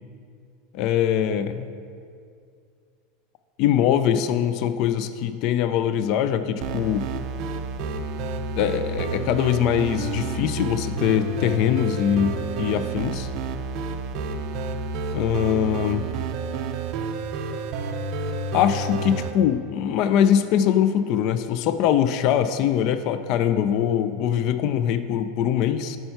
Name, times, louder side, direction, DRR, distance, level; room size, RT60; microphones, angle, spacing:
voice 1, 0.7-1.7 3.6-7.1 8.5-13.3 15.1-16.1 18.5-26.0, left 9 dB, 40° left, 11 dB, 0.4 m, -22 dB
sound 1, 6.6-19.3, right 3 dB, 40° right, 0.4 m, -29 dB
8.9 x 5.6 x 4.5 m, 2.3 s
supercardioid pair, 170°, 0 cm